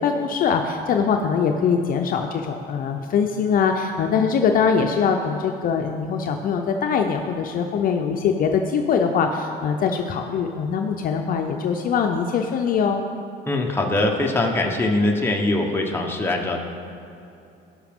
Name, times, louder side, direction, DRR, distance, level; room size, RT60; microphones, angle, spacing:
voice 1, 0.0-13.0, left 6 dB, 50° left, 4 dB, 0.6 m, -22 dB
voice 2, 13.5-16.6, left 2 dB, 10° left, 1 dB, 1.0 m, -22 dB
16.5 x 5.7 x 3.6 m, 2.8 s
cardioid pair, 135°, 19 cm